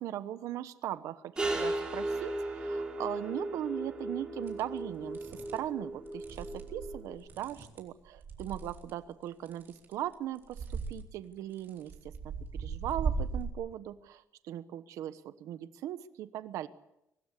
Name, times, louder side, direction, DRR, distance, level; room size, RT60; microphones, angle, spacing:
voice 1, 0.0-12.1 12.5-16.7, right 12 dB, 90° right, 12 dB, 1.1 m, -39 dB
sound 1, 1.4-7.1, right 1 dB, 15° right, 4.3 m, -36 dB
sound 2, 4.5-4.6 5.1-5.6 6.1-8.9 9.5-10.1 10.4-11.0 11.6-13.5, right 5 dB, 40° right, 4.0 m, -37 dB
24.5 x 19.5 x 8.4 m, 0.86 s
cardioid pair, 170°, 5 cm